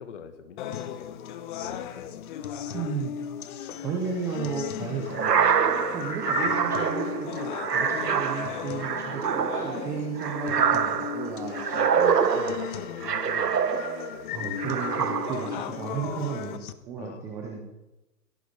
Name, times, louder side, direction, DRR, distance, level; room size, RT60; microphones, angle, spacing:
voice 1, 0.0-2.6 12.3-13.6 14.1-14.5 17.0-17.6, left 7 dB, 45° left, 9 dB, 2.0 m, -44 dB
sound 1, 0.6-16.6, left 10 dB, 30° left, 1.0 m, -36 dB
sound 2, 0.7-16.7, left 9 dB, 65° left, 1.3 m, -44 dB
voice 2, 2.7-3.1 3.8-5.5 5.9-12.0 14.3-16.6 16.9-17.6, right 6 dB, 5° right, 0 dB, 0.6 m, -34 dB
sound 3, 5.1-14.2 14.6-15.6, right 7 dB, 80° right, 1.5 m, -26 dB
17.0 x 14.0 x 5.2 m, 1.0 s
hypercardioid pair, 145°, 47 cm